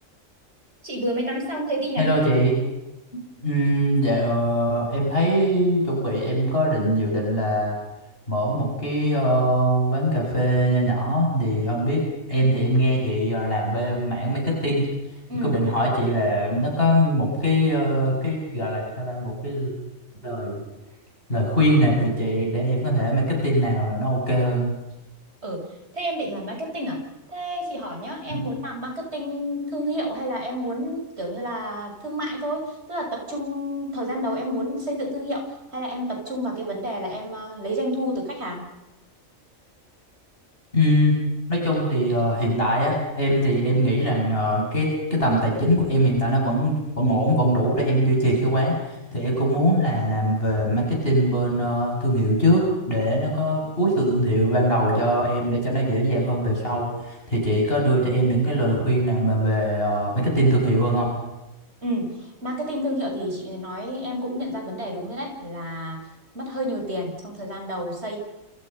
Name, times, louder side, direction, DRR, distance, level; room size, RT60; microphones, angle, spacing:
voice 1, 0.8-2.2 15.3-15.6 25.4-27.0 27.3-38.6 61.8-66.1 66.3-68.2, equal, 50° right, 1 dB, 6.7 m, -30 dB
voice 2, 2.0-2.5 3.1-7.8 8.3-12.0 12.3-14.9 15.4-19.7 20.2-20.6 21.3-24.7 28.3-28.5 40.7-41.2 41.5-61.1, equal, 45° left, -2 dB, 7.8 m, -22 dB
29.0 x 28.0 x 5.7 m, 0.95 s
omnidirectional pair, 1.4 m